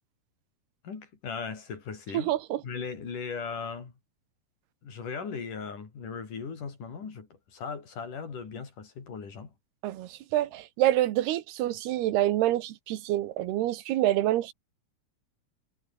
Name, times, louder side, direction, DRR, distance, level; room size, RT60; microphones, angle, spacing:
voice 1, 0.8-2.3 2.6-3.9 4.8-9.5, left 5 dB, 55° left, 5.7 m, -38 dB
voice 2, 2.1-2.6 9.8-14.5, right 14 dB, 90° right, 3.4 m, -27 dB
omnidirectional pair, 4.5 m